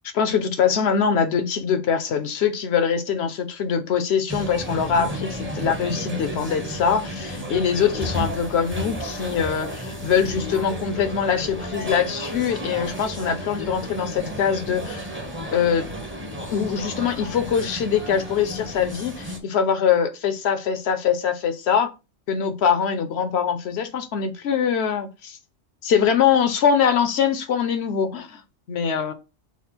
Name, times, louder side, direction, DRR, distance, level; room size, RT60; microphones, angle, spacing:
voice 1, 0.1-15.1 15.5-15.9 16.5-21.9 22.3-25.4 25.8-28.4 28.7-29.1, left 7 dB, 60° left, 0.9 m, -23 dB
sound 1, 4.3-19.4, equal, 10° right, 0.7 m, -32 dB
5.9 x 2.1 x 4.3 m
omnidirectional pair, 1.3 m